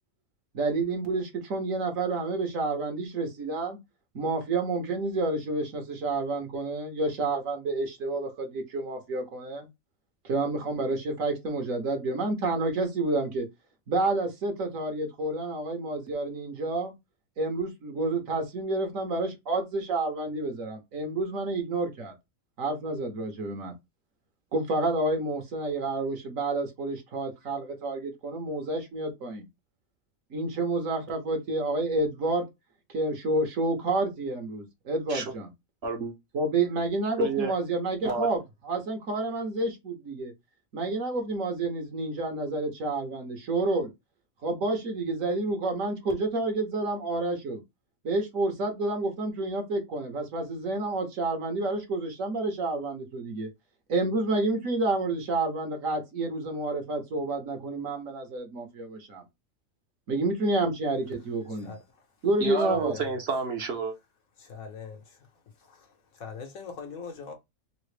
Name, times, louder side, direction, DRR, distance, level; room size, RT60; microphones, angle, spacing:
voice 1, 0.5-3.8 4.1-9.7 10.2-13.5 13.9-16.9 17.4-22.1 22.6-23.7 24.5-29.4 30.3-32.5 32.9-35.5 36.3-40.3 40.7-43.9 44.4-47.6 48.0-53.5 53.9-59.2 60.1-61.7 62.2-63.0, right 2 dB, 70° right, 1.4 m, -29 dB
voice 2, 35.8-36.1 37.2-37.5 38.0-38.3 62.4-63.9, right 4 dB, 55° right, 0.9 m, -30 dB
voice 3, 62.7-63.1 64.4-65.0 65.7-65.8 66.2-67.3, left 5 dB, 75° left, 1.4 m, -41 dB
3.8 x 2.0 x 3.2 m
omnidirectional pair, 1.5 m